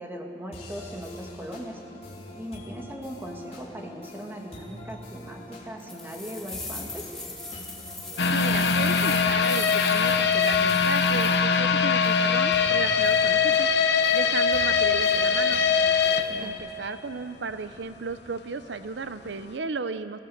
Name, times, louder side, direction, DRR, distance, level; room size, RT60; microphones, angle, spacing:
voice 1, 0.0-1.8 2.3-7.1 16.3-16.6, equal, 15° right, 1 dB, 2.0 m, -39 dB
sound 1, 0.5-16.5, left 1 dB, 35° left, 3.5 m, -45 dB
sound 2, 5.8-11.4, left 2 dB, 5° left, 2.9 m, -38 dB
sound 3, 8.2-17.2 17.5-17.6 18.1-18.2, left 6 dB, 65° left, 0.9 m, -22 dB
voice 2, 8.3-15.6 16.4-20.2, right 4 dB, 80° right, 11 dB, 0.6 m, -34 dB
23.5 x 16.5 x 7.9 m, 2.9 s
head